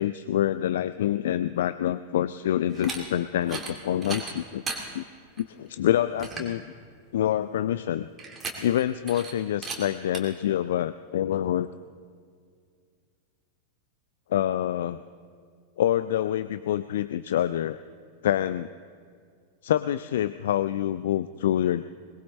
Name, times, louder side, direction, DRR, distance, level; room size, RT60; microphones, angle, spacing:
voice 1, 0.0-4.6 4.9-5.0 5.4-6.6 7.1-8.1 8.6-11.7 14.3-15.0 15.8-17.8 18.2-18.7 19.6-21.8, left 11 dB, 60° left, 13 dB, 0.4 m, -26 dB
sound 1, 2.7-3.0 3.4-3.7 4.0-4.8 5.4-5.5 5.9-6.0 6.2-6.5 8.2-8.8 9.1-9.3 9.6-9.8 10.1-10.2, right 4 dB, 20° right, 2.6 m, -35 dB
22.0 x 21.0 x 3.2 m, 2.1 s
figure-of-eight pair, 90°, 0 cm